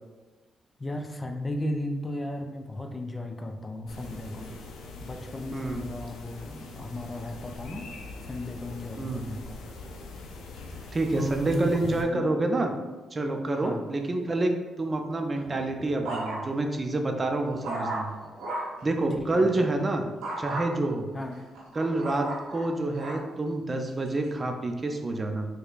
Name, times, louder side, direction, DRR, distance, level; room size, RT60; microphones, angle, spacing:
voice 1, 0.8-4.5 5.0-7.9 8.2-9.6 10.7-10.8 11.1-12.4 13.6-13.8 19.2-19.7 21.1-21.4, left 1 dB, 30° left, 5 dB, 0.5 m, -35 dB
sound 1, 3.9-12.0, left 3 dB, 85° left, 0.4 m, -43 dB
voice 2, 5.5-5.8 9.0-9.3 10.9-12.7 13.1-14.5 14.8-18.1 18.8-20.0 20.4-21.1 21.7-25.5, right 2 dB, 35° right, 4 dB, 0.5 m, -28 dB
sound 2, 15.4-16.7 17.2-18.8 20.2-20.7 21.3-23.2 23.9-24.3, right 2 dB, 85° right, 0.9 m, -35 dB
4.7 x 2.2 x 2.4 m, 1.2 s
supercardioid pair, 60°, 0 cm